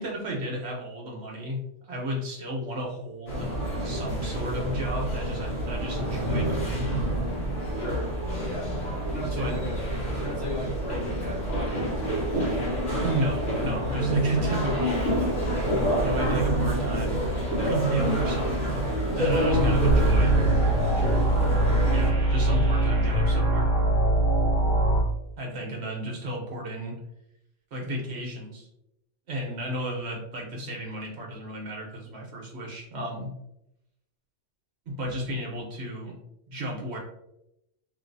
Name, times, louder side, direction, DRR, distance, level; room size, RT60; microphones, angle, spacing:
voice 1, 0.0-6.9 9.2-9.6 13.0-15.3 16.0-18.8 19.2-20.3 21.9-23.7 25.4-27.0 27.7-28.7 29.3-33.3 34.9-36.2 36.5-37.0, equal, 60° right, -2 dB, 1.2 m, -33 dB
sound 1, 3.3-22.1, right 1 dB, 70° left, 1.5 m, -27 dB
voice 2, 7.8-8.1 8.4-8.7 9.1-9.8 10.2-12.6 20.9-21.5, left 1 dB, 20° left, -8 dB, 1.2 m, -37 dB
sound 2, 19.5-25.0, right 1 dB, 40° right, 1.0 m, -22 dB
3.2 x 2.7 x 2.6 m, 0.83 s
omnidirectional pair, 1.3 m